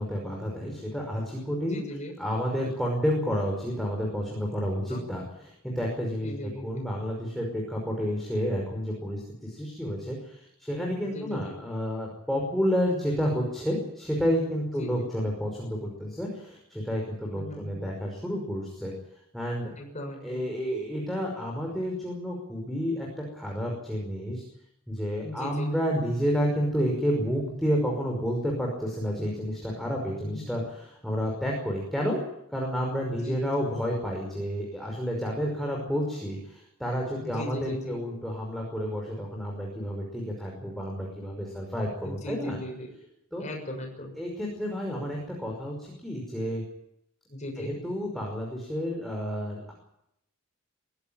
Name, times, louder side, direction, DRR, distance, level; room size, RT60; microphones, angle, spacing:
voice 1, 0.0-1.8 2.2-18.9 19.3-19.7 20.2-24.4 24.9-32.2 32.5-42.6 43.3-43.4 44.2-46.6 47.6-49.7, equal, ahead, -1 dB, 5.4 m, -30 dB
voice 2, 1.6-2.1 4.9-5.1 6.2-6.8 11.0-11.6 14.7-15.3 17.3-17.8 19.8-20.4 25.2-25.6 30.2-30.5 33.1-33.7 37.2-38.0 42.0-42.9 43.4-44.1 47.3-47.7, left 1 dB, 35° left, 1 dB, 6.7 m, -38 dB
23.0 x 15.5 x 8.9 m, 0.78 s
head